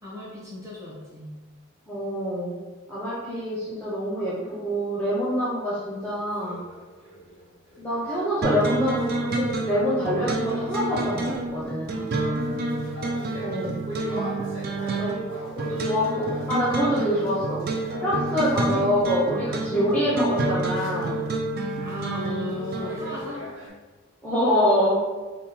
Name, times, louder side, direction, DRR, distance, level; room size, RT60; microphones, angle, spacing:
voice 1, 0.0-1.3 11.9-12.7 21.8-23.5, left 3 dB, 15° right, -6 dB, 0.9 m, -36 dB
voice 2, 1.9-2.6 2.9-6.7 7.8-12.1 13.4-13.8 14.8-15.2 15.6-17.7 18.0-21.2 24.2-25.1, equal, 5° left, -9 dB, 0.6 m, -26 dB
sound 1, 6.0-19.2 19.9-23.7, left 1 dB, 70° right, 1.2 m, -44 dB
sound 2, 8.4-23.2, right 2 dB, 45° right, 0.4 m, -29 dB
3.6 x 2.2 x 4.1 m, 1.3 s
head